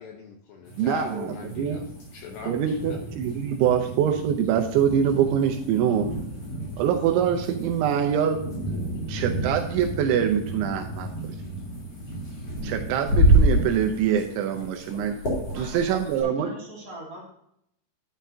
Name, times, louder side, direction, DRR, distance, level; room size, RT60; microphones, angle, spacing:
voice 1, 0.0-1.8 2.1-3.0, left 6 dB, 75° left, 2 dB, 2.6 m, -40 dB
sound 1, 0.7-16.2, right 1 dB, 35° left, 3.9 m, -29 dB
voice 2, 0.8-1.9 2.5-6.1 6.8-8.4 9.1-11.3 12.6-15.2 15.5-16.5, right 8 dB, 80° right, 5 dB, 2.9 m, -24 dB
voice 3, 15.5-17.3, right 1 dB, 45° right, -4 dB, 2.4 m, -41 dB
11.0 x 10.0 x 2.7 m, 0.75 s
omnidirectional pair, 5.7 m